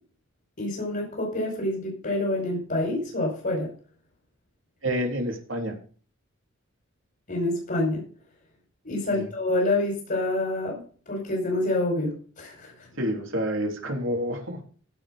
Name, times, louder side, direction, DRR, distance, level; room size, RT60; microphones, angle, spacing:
voice 1, 0.6-3.7 7.3-8.1 8.8-12.9, left 2 dB, 45° left, -1 dB, 5.2 m, -27 dB
voice 2, 4.8-5.8 9.1-9.3 13.0-14.7, equal, 70° right, 2 dB, 3.7 m, -28 dB
16.0 x 6.2 x 5.4 m, 0.41 s
head